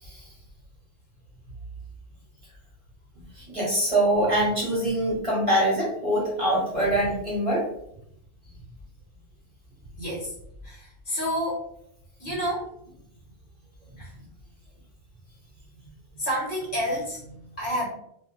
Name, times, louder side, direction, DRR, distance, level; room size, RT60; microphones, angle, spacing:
voice 1, 3.4-7.6, right 1 dB, 30° right, -7 dB, 1.1 m, -24 dB
voice 2, 10.0-10.3 10.6-11.7 12.2-12.7 14.0-14.2 16.1-17.9, equal, 50° left, -6 dB, 1.3 m, -30 dB
2.6 x 2.3 x 2.5 m, 0.75 s
omnidirectional pair, 1.1 m